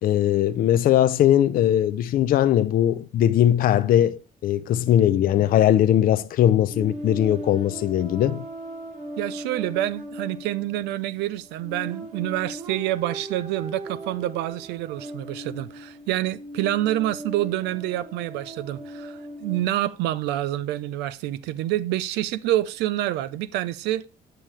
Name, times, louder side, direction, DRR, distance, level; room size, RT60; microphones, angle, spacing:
voice 1, 0.0-8.5, left 11 dB, 60° left, 0.5 m, -20 dB
sound 1, 6.7-19.6, right 1 dB, 45° right, 2.5 m, -38 dB
voice 2, 9.2-24.0, right 14 dB, 90° right, 0.6 m, -27 dB
9.2 x 5.7 x 3.2 m
cardioid pair, 110°, 17 cm